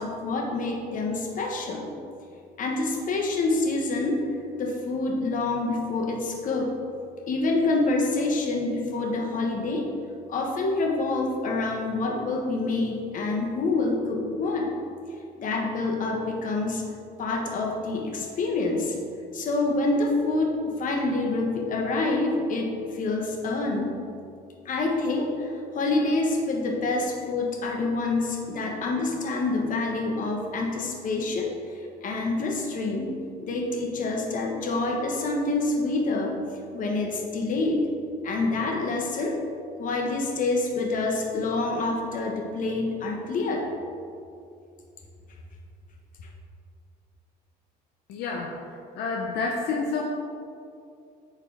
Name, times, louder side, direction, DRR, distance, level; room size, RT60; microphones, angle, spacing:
voice 1, 0.0-1.9 2.6-4.2 4.5-6.7 7.3-9.9 10.3-14.7 15.4-16.8 17.2-19.0 19.3-24.0 24.6-33.1 33.4-36.4 36.7-37.8 38.2-39.4 39.8-43.7, left 2 dB, 50° left, 1 dB, 1.2 m, -27 dB
voice 2, 48.1-48.5 48.9-50.0, left 4 dB, 75° left, 0 dB, 0.7 m, -28 dB
8.6 x 4.9 x 3.4 m, 2.5 s
cardioid pair, 110°, 17 cm